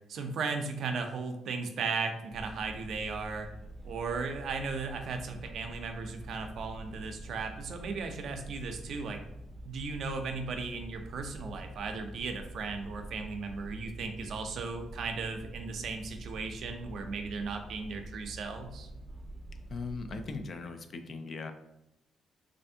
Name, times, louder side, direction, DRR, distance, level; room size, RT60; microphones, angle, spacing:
voice 1, 0.1-3.5 3.8-9.2 9.6-18.9, right 4 dB, 65° right, 6 dB, 0.4 m, -36 dB
sound 1, 2.3-20.4, right 1 dB, 15° right, 0.6 m, -46 dB
voice 2, 19.7-21.5, left 4 dB, 50° left, 7 dB, 0.4 m, -39 dB
3.3 x 2.4 x 2.7 m, 0.88 s
cardioid pair, 90°, 0 cm